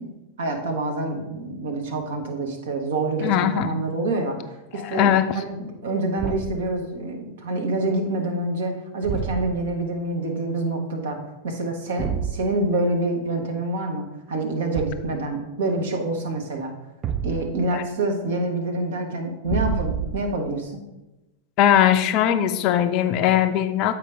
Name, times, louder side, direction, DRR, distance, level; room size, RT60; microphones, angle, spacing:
voice 1, 0.0-11.2 11.4-16.7 17.2-20.8, right 2 dB, 60° right, 3 dB, 1.2 m, -27 dB
voice 2, 3.2-3.7 4.7-5.3 17.7-17.8 21.6-23.9, left 10 dB, 40° left, 10 dB, 0.4 m, -20 dB
Thump thud, 6.2-6.7 9.0-9.7 12.0-12.4 14.7-15.2 17.0-17.7 19.4-20.4, right 8 dB, 30° right, 0.4 m, -28 dB
7.8 x 4.7 x 3.8 m, 1.0 s
figure-of-eight pair, 90°, 0 cm